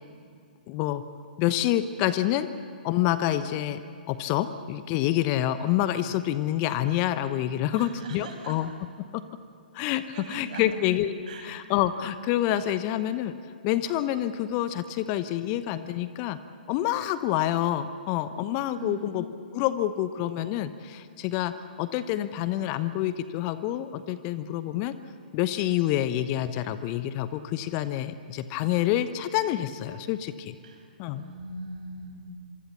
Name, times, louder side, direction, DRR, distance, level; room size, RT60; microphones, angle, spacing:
voice 1, 0.7-1.0 1.4-2.5 2.8-3.8 4.1-8.7 9.1-9.2 9.7-11.1 11.4-13.3 13.6-16.4 16.7-19.3 19.5-24.9 25.3-30.5 31.0-31.2, left 13 dB, 30° left, 12 dB, 0.9 m, -27 dB
voice 2, 7.7-8.6 10.1-10.7 11.3-11.4 18.8-19.3 30.6-32.3, right 3 dB, 50° right, 2 dB, 6.2 m, -40 dB
26.5 x 24.5 x 7.0 m, 2.3 s
figure-of-eight pair, 120°, 5 cm